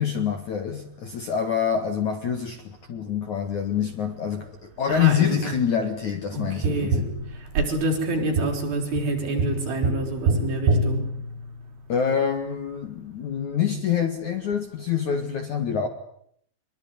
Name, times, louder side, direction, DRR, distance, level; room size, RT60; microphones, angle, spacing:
voice 1, 0.0-7.1 11.9-15.9, left 8 dB, 55° left, 7 dB, 2.5 m, -26 dB
voice 2, 4.9-5.5 6.3-7.0 7.5-11.0, right 1 dB, 50° right, 2 dB, 6.6 m, -27 dB
Tap, 6.6-11.9 14.5-14.6, right 3 dB, 75° right, 5.2 m, -27 dB
24.0 x 22.5 x 9.6 m, 0.69 s
omnidirectional pair, 5.3 m